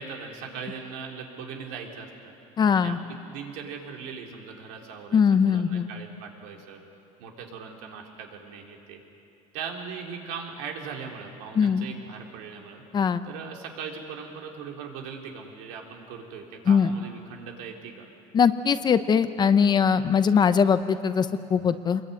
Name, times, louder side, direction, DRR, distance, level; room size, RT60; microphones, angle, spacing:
voice 1, 0.0-2.3 2.7-3.0 3.3-6.8 7.2-9.0 9.5-12.8 13.2-18.0, right 6 dB, 80° right, 1 dB, 4.0 m, -39 dB
voice 2, 2.6-3.0 5.1-5.9 11.5-11.8 12.9-13.2 16.7-16.9 18.3-22.0, left 6 dB, 30° left, 11 dB, 0.9 m, -21 dB
25.5 x 22.0 x 9.5 m, 2.7 s
cardioid pair, 135°, 15 cm